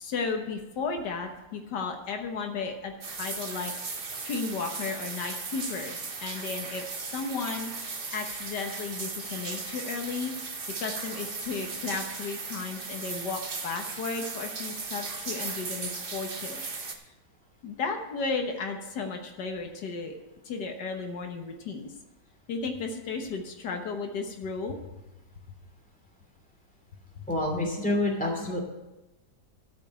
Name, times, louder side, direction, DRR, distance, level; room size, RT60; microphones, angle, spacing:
voice 1, 0.0-6.8 7.1-10.3 10.8-16.6 17.6-20.1 20.5-21.9 22.5-24.8 27.2-27.3, left 4 dB, 80° left, 4 dB, 1.8 m, -34 dB
sound 1, 3.0-16.9, right 4 dB, 35° right, 1.1 m, -37 dB
voice 2, 27.3-28.6, left 1 dB, 5° left, -1 dB, 2.6 m, -27 dB
12.5 x 5.3 x 8.4 m, 1.0 s
omnidirectional pair, 1.8 m